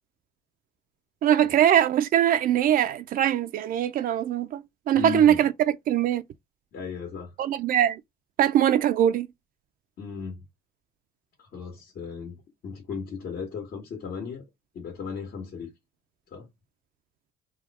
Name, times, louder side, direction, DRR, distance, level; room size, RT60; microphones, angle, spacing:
voice 1, 1.2-5.5 5.9-6.2 7.4-8.0 8.4-9.3, right 10 dB, 55° right, 0.4 m, -22 dB
voice 2, 4.9-5.4 6.7-7.3 10.0-10.4 11.4-14.4 14.7-15.7 16.3-16.5, left 6 dB, 65° left, 1.6 m, -36 dB
3.5 x 2.3 x 4.1 m
cardioid pair, 110°, 17 cm